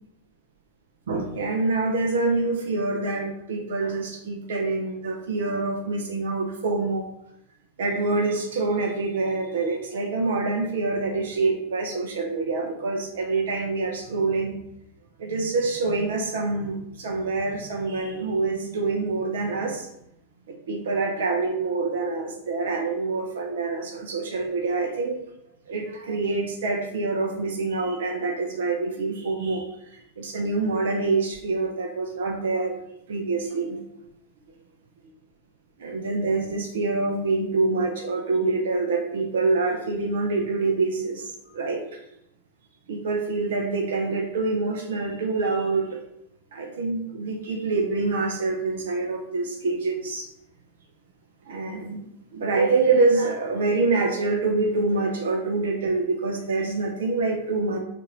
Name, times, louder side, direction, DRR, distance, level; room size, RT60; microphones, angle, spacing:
voice 1, 1.1-7.1 7.8-14.6 15.2-19.9 20.5-25.2 25.7-33.8 35.8-42.0 42.9-46.0 46.5-50.3 51.5-52.0 52.3-57.8, right 3 dB, 60° right, 2 dB, 0.7 m, -26 dB
3.9 x 2.6 x 4.6 m, 0.79 s
figure-of-eight pair, 90°, 0 cm